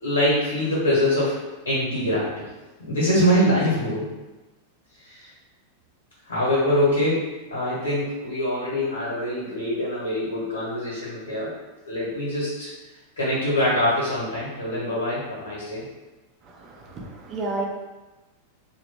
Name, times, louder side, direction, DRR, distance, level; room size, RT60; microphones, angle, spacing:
voice 1, 0.0-1.4 1.6-2.4 2.9-4.1 5.0-5.3 6.3-7.2 7.5-11.5 11.9-12.7 13.2-15.8, equal, 75° left, -6 dB, 1.1 m, -24 dB
voice 2, 16.4-17.6, right 2 dB, 30° right, 0 dB, 0.6 m, -32 dB
2.9 x 2.4 x 3.3 m, 1.1 s
figure-of-eight pair, 90°, 0 cm